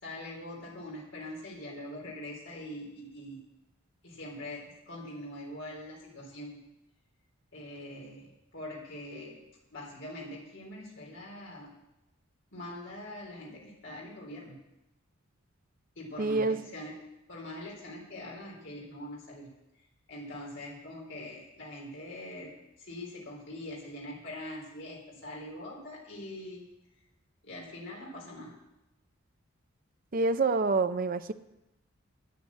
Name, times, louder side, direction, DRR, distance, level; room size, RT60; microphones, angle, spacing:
voice 1, 0.0-3.4 4.0-6.6 7.5-9.4 9.7-11.7 12.5-14.6 16.0-17.0 17.3-19.5 20.1-22.5 22.8-26.7 27.4-28.5, left 1 dB, 60° left, -3 dB, 3.9 m, -43 dB
voice 2, 16.2-16.6 30.1-31.3, right 3 dB, 45° right, 11 dB, 0.5 m, -27 dB
9.7 x 9.4 x 8.6 m, 0.93 s
head